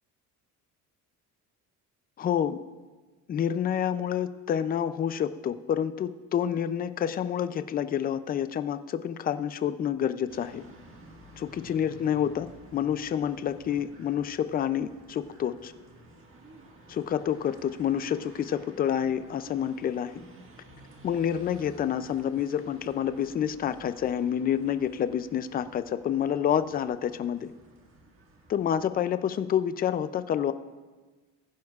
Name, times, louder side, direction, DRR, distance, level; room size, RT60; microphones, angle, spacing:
voice 1, 2.2-2.6 3.3-10.6 11.4-15.7 16.9-20.2 21.0-27.5 28.5-30.5, left 9 dB, 30° left, 12 dB, 0.4 m, -28 dB
sound 1, 10.3-28.9, right 1 dB, 35° right, 1.7 m, -53 dB
20.0 x 10.5 x 2.4 m, 1.3 s
cardioid pair, 165°, 34 cm